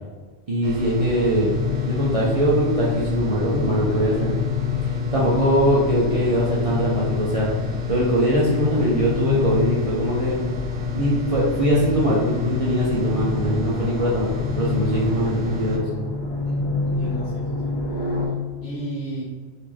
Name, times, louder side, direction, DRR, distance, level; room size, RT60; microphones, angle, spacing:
voice 1, 0.5-1.5 1.8-4.4 5.1-10.4 11.0-15.9, right 1 dB, 40° right, -7 dB, 0.5 m, -22 dB
sound 1, 0.6-15.8, left 6 dB, 80° right, 0.9 m, -29 dB
sound 2, 1.3-18.3, left 4 dB, 35° left, 0.4 m, -30 dB
voice 2, 16.4-17.8 18.6-19.2, right 2 dB, 50° left, -7 dB, 1.3 m, -32 dB
3.6 x 2.7 x 3.1 m, 1.4 s
omnidirectional pair, 1.2 m